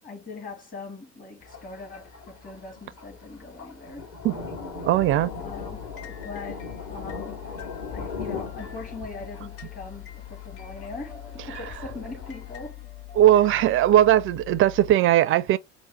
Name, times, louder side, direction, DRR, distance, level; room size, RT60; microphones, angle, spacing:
voice 1, 0.0-4.1 5.4-7.4 7.9-12.9 13.3-13.6, left 3 dB, 20° left, 1.8 m, -41 dB
Thunder, 1.4-12.7, left 4 dB, 40° left, 2.2 m, -40 dB
voice 2, 4.9-5.3 13.2-15.6, right 13 dB, 35° right, 0.4 m, -19 dB
sound 1, 5.0-14.9, left 13 dB, 60° left, 1.4 m, -42 dB
4.8 x 2.1 x 3.0 m
figure-of-eight pair, 70°, 38 cm